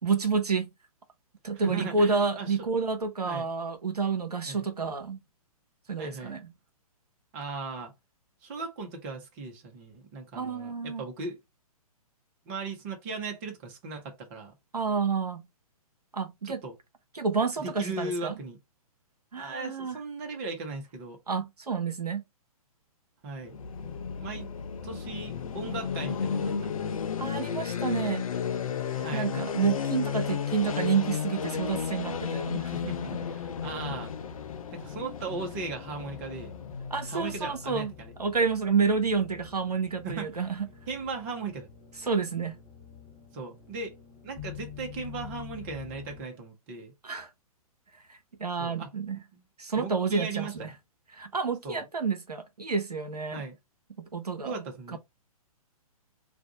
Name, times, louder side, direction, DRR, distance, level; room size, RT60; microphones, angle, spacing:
voice 1, 0.0-0.7 1.4-5.2 5.9-6.5 10.3-11.0 14.7-15.5 16.1-16.6 17.1-18.4 19.3-20.0 21.3-22.2 27.2-28.3 29.1-32.7 36.9-37.9 38.2-40.7 42.0-42.6 47.0-47.3 48.1-49.2 49.6-50.7 51.1-53.4 54.0-54.5 54.9-55.0, right 5 dB, 90° right, 0.6 m, -29 dB
voice 2, 1.5-2.7 3.2-3.5 4.5-4.7 6.0-6.4 7.3-7.9 8.4-11.4 12.5-14.5 16.4-16.7 17.6-18.6 19.3-21.2 23.2-23.6 24.2-24.5 24.8-27.0 28.9-29.3 32.6-34.1 34.7-36.5 37.1-38.1 40.0-40.4 40.9-41.7 43.3-43.9 44.2-46.9 48.6-48.9 49.3-49.4 49.8-50.7 51.6-51.8 53.3-53.5 54.4-55.0, right 3 dB, 30° right, 0.9 m, -38 dB
sound 1, 23.4-37.3, left 7 dB, 65° left, 0.5 m, -33 dB
sound 2, 31.5-46.2, left 7 dB, 20° left, 1.2 m, -47 dB
2.5 x 2.4 x 3.8 m
figure-of-eight pair, 125°, 19 cm